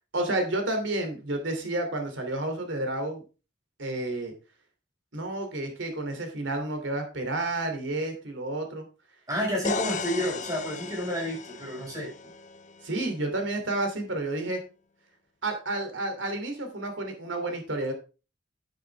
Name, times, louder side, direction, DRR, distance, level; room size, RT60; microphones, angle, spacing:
voice 1, 0.1-3.2 3.8-4.3 5.1-8.8 12.8-14.6 15.4-17.9, right 2 dB, 90° right, 5 dB, 3.0 m, -30 dB
voice 2, 9.3-12.1, equal, 20° right, -2 dB, 5.5 m, -30 dB
sound 1, 9.6-13.5, left 5 dB, 40° left, 0.8 m, -36 dB
9.6 x 8.7 x 3.5 m, 0.32 s
head